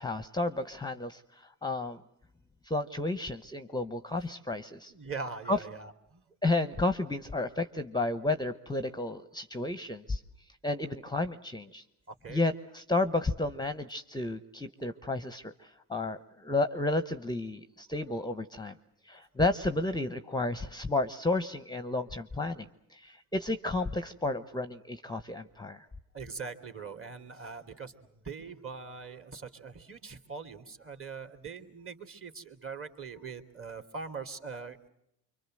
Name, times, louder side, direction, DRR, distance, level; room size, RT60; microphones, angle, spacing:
voice 1, 0.0-2.0 2.6-4.9 5.5-5.6 6.4-10.2 10.6-11.8 12.3-18.7 19.0-25.9, left 2 dB, 10° left, 11 dB, 1.0 m, -32 dB
voice 2, 4.9-6.2 12.1-12.4 25.8-25.9 26.1-34.9, right 5 dB, 30° right, 8 dB, 2.8 m, -42 dB
26.0 x 24.0 x 7.7 m, 0.79 s
supercardioid pair, 90°, 44 cm